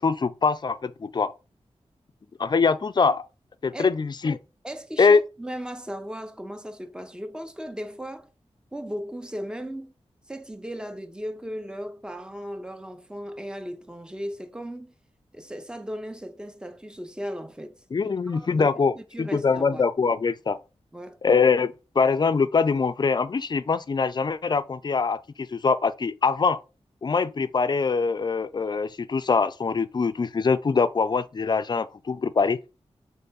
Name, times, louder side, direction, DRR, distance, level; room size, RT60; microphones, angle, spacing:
voice 1, 0.0-1.3 2.4-3.3 3.6-4.4 5.0-5.2 17.9-20.6 21.2-26.6 27.0-32.6, left 5 dB, 40° left, 0.4 m, -23 dB
voice 2, 4.6-8.3 8.7-9.9 10.3-14.9 15.3-17.7 18.0-19.9 20.9-21.2, equal, 5° right, 0.5 m, -36 dB
3.7 x 3.4 x 4.0 m
wide cardioid pair, 75°, 11 cm